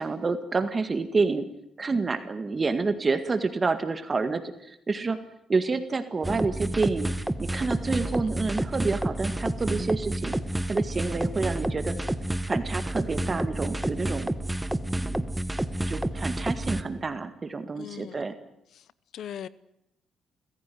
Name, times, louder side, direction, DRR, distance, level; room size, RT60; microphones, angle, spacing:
voice 1, 0.0-1.5 1.8-5.2 5.5-7.1 7.4-10.3 10.7-12.0 12.4-14.3 15.0-15.3 15.8-18.3, right 4 dB, 30° right, 1.9 m, -28 dB
sound 1, 6.2-16.8, right 1 dB, 10° right, 1.4 m, -29 dB
voice 2, 8.0-8.3 17.8-18.2 18.7-18.8 19.1-19.5, left 10 dB, 70° left, 0.8 m, -40 dB
29.5 x 16.0 x 9.4 m
cardioid pair, 90°, 0 cm